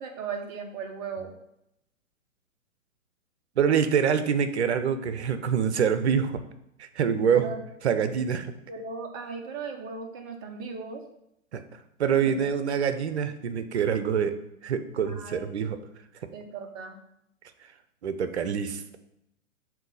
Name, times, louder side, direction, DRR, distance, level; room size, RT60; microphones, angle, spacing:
voice 1, 0.0-1.3 7.3-7.6 8.7-11.0 12.2-12.5 15.0-15.7 16.3-17.0, right 5 dB, 15° right, 3 dB, 0.5 m, -37 dB
voice 2, 3.6-6.4 6.8-7.5 7.8-8.5 11.5-11.6 12.0-15.8 18.0-19.0, right 7 dB, 55° right, 10 dB, 0.7 m, -25 dB
7.4 x 2.8 x 5.4 m, 0.81 s
figure-of-eight pair, 120°, 40 cm